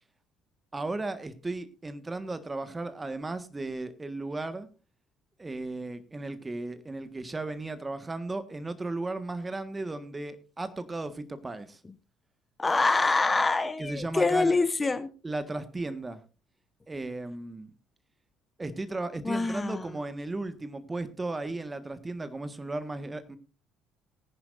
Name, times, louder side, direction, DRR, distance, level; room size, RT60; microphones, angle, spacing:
voice 1, 0.7-4.7 5.4-11.8 13.8-14.6 15.2-16.2 16.9-17.7 18.6-23.4, right 2 dB, 20° right, 11 dB, 1.6 m, -35 dB
voice 2, 12.6-15.1 19.2-19.9, left 3 dB, 20° left, 13 dB, 0.9 m, -25 dB
19.0 x 11.0 x 2.6 m, 0.33 s
figure-of-eight pair, 55°, 0 cm